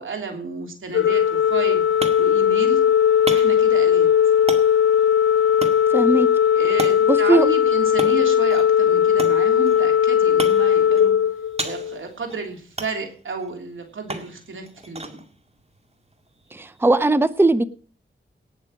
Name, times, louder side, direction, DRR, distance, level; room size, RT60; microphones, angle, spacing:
voice 1, 0.0-1.8 2.2-2.8 3.3-4.1 6.6-11.1 11.6-15.2, right 4 dB, 85° right, 3.2 m, -32 dB
Organ, 0.9-12.0, left 9 dB, 85° left, 0.7 m, -18 dB
sound 1, 1.4-17.0, right 2 dB, 35° right, 2.1 m, -37 dB
voice 2, 5.9-6.3 7.1-7.5 16.5-17.6, right 2 dB, 10° right, 0.7 m, -18 dB
18.5 x 6.5 x 6.4 m
wide cardioid pair, 65°, 20 cm